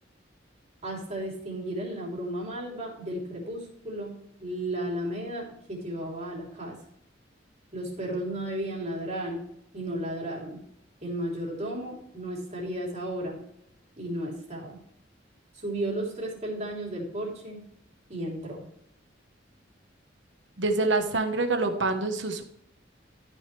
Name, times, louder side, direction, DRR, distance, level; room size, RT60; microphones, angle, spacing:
voice 1, 0.8-4.1 4.4-6.8 7.7-9.4 9.7-10.6 11.0-13.4 14.0-14.8 15.5-17.6 18.1-18.6, right 1 dB, 40° right, -3 dB, 3.5 m, -34 dB
voice 2, 20.6-22.4, right 3 dB, 70° right, 6 dB, 1.3 m, -26 dB
13.5 x 6.5 x 3.3 m, 0.75 s
head